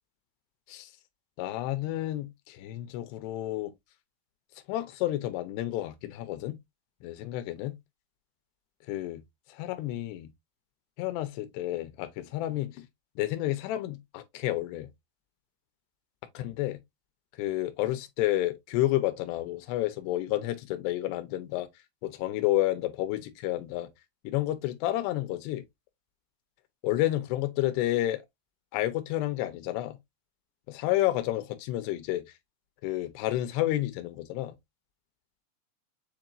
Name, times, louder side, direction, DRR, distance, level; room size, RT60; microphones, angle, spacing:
voice 1, 1.4-3.7 4.7-6.6 7.0-7.8 8.9-9.2 9.6-10.3 11.0-12.9 13.2-14.9 16.3-16.8 17.4-21.7 22.0-23.9 24.2-25.6 26.8-28.2 28.7-30.0 30.7-32.2 32.8-34.5, left 15 dB, 80° left, 2.7 m, -30 dB
7.1 x 2.9 x 2.5 m
omnidirectional pair, 4.9 m